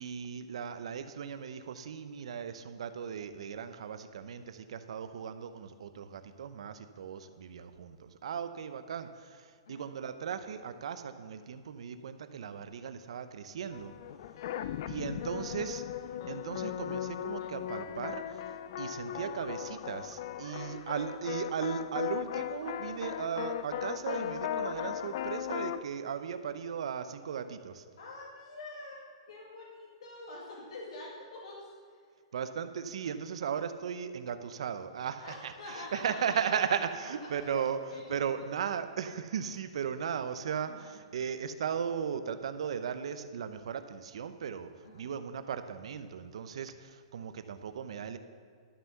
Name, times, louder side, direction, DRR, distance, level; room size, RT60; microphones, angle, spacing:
voice 1, 0.0-13.9 14.9-15.8 16.3-18.4 18.8-27.8 32.3-37.8 38.1-48.2, right 7 dB, 70° right, 10 dB, 0.8 m, -37 dB
sound 1, 13.7-25.8, left 10 dB, 50° left, 0.4 m, -37 dB
voice 2, 14.5-15.6 20.3-20.7 28.0-32.1 35.2-36.6 37.4-37.6 37.9-38.5 40.7-40.9 44.8-45.0, left 2 dB, 75° left, -4 dB, 2.1 m, -46 dB
12.5 x 5.8 x 6.8 m, 2.2 s
hypercardioid pair, 165°, 3 cm